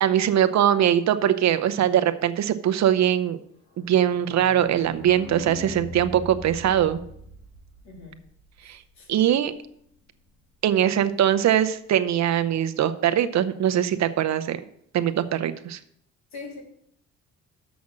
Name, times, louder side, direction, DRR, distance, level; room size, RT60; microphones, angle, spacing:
voice 1, 0.0-3.4 3.9-7.0 8.6-8.8 9.1-9.5 10.6-14.6 14.9-15.8, right 10 dB, 65° right, 10 dB, 0.7 m, -22 dB
sound 1, 3.7-9.2 9.6-9.7 9.8-9.9 10.2-10.3, left 3 dB, 85° left, 2.6 m, -42 dB
voice 2, 7.8-8.2 8.6-9.1 16.3-16.6, left 3 dB, 65° left, 0 dB, 3.3 m, -42 dB
7.3 x 6.1 x 7.4 m, 0.70 s
cardioid pair, 90°, 30 cm